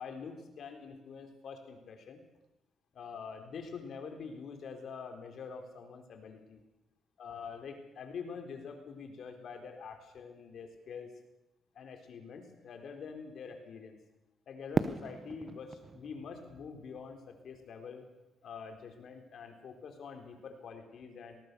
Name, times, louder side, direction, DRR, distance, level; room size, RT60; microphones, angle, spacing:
voice 1, 0.0-2.2 2.9-6.6 7.2-11.1 11.7-14.0 14.5-18.1 18.4-21.4, left 5 dB, 60° left, 5 dB, 4.2 m, -45 dB
Fireworks, 14.7-17.8, right 4 dB, 35° right, 1.1 m, -37 dB
19.5 x 19.0 x 7.0 m, 0.93 s
cardioid pair, 90°, 0 cm